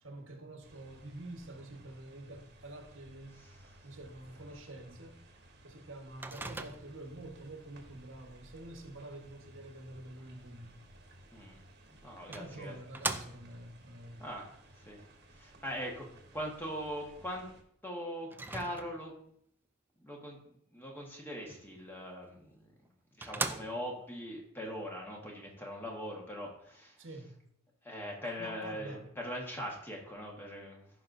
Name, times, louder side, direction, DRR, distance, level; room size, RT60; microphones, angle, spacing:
voice 1, 0.0-3.4 3.8-5.2 5.6-10.7 12.3-14.3 27.0-27.4 28.4-29.3, right 1 dB, 75° right, 4 dB, 1.3 m, -47 dB
sound 1, 0.6-17.6, right 1 dB, 55° right, 1.3 m, -58 dB
Microwave oven, 6.2-7.1 11.5-11.6 12.3-13.7 18.3-19.2 22.3-22.4 22.8-22.9 23.2-24.1, right 3 dB, 10° right, 0.3 m, -39 dB
voice 2, 11.3-11.6 12.0-12.7 14.2-15.1 15.3-17.5 17.8-19.1 20.0-22.7 23.2-27.0 27.8-30.9, equal, 10° left, -1 dB, 1.5 m, -41 dB
14.0 x 5.8 x 2.6 m, 0.68 s
head